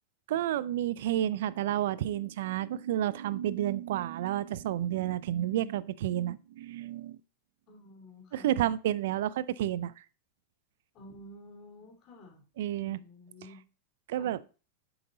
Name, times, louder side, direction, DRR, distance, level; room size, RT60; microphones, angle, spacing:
voice 1, 0.3-7.2 8.3-10.0 12.6-13.0 14.1-14.4, right 12 dB, 70° right, 0.4 m, -30 dB
voice 2, 7.7-8.5 10.9-12.4 12.8-13.6 14.2-14.3, left 1 dB, 45° left, 3.2 m, -51 dB
7.7 x 5.5 x 2.7 m
hypercardioid pair, 105°, 0 cm